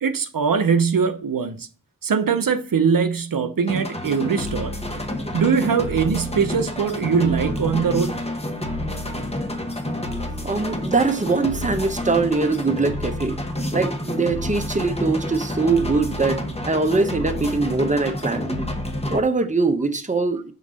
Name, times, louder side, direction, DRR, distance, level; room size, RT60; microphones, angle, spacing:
voice 1, 0.0-1.7 2.0-4.8 5.3-8.2, right 6 dB, 85° right, 0.6 m, -21 dB
sound 1, 3.7-19.2, left 1 dB, 20° left, 0.9 m, -29 dB
voice 2, 10.4-13.4 13.7-18.5 19.1-20.5, right 3 dB, 25° right, 0.7 m, -22 dB
sound 2, 14.9-17.9, right 1 dB, 35° left, 1.3 m, -45 dB
5.3 x 3.8 x 5.0 m
wide cardioid pair, 45°, 33 cm